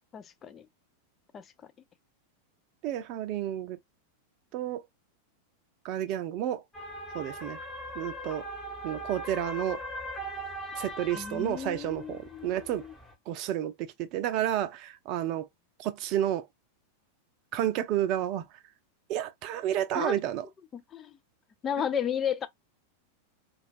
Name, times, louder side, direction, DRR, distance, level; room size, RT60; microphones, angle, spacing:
voice 1, 0.1-0.6 1.3-1.4 11.1-12.9 19.9-20.2 20.7-21.1 21.6-22.5, left 8 dB, 25° left, 0.5 m, -33 dB
voice 2, 2.8-3.8 4.5-4.8 5.8-6.6 7.1-7.6 7.9-8.5 8.8-9.8 10.7-12.8 13.3-15.5 15.8-16.5 17.5-18.5 19.1-20.4, right 11 dB, 40° right, 0.6 m, -31 dB
sound 1, 6.7-13.1, equal, 5° left, 1.2 m, -40 dB
4.4 x 2.4 x 2.4 m
figure-of-eight pair, 90°, 0 cm